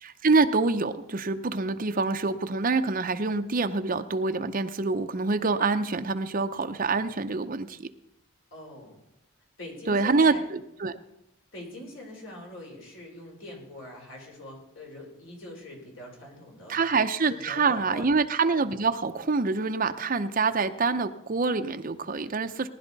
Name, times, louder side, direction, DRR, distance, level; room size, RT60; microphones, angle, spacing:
voice 1, 0.0-7.9 9.9-11.0 16.7-22.7, right 4 dB, 40° right, 8 dB, 0.7 m, -26 dB
voice 2, 8.5-9.0 9.6-10.4 11.5-16.8 17.3-18.1, left 1 dB, 65° left, 0 dB, 3.8 m, -43 dB
19.5 x 11.0 x 4.0 m, 0.85 s
head